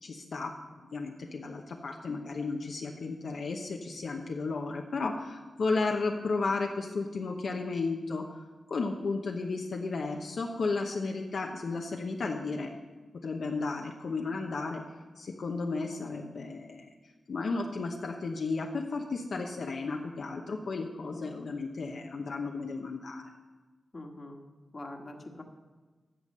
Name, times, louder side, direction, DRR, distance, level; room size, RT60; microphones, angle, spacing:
voice 1, 0.0-12.7 13.2-14.8 15.2-16.9 17.3-23.3, left 3 dB, 60° left, 1 dB, 0.9 m, -34 dB
voice 2, 21.1-21.6 23.9-24.4 24.7-25.4, left 2 dB, 30° left, 3 dB, 1.5 m, -43 dB
11.5 x 7.2 x 6.6 m, 1.3 s
wide cardioid pair, 115°, 0 cm